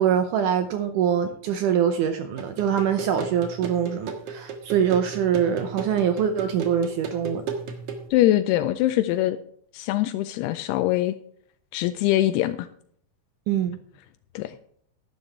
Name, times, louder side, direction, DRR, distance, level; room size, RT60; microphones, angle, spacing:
voice 1, 0.0-7.4 13.5-13.8, right 8 dB, 85° right, 8 dB, 1.7 m, -24 dB
sound 1, 2.4-8.1, right 5 dB, 55° right, 1.8 m, -35 dB
voice 2, 8.1-9.4 9.7-11.2 11.7-12.7 14.4-14.6, left 14 dB, 85° left, 10 dB, 2.6 m, -23 dB
11.5 x 11.0 x 3.3 m, 0.64 s
omnidirectional pair, 4.6 m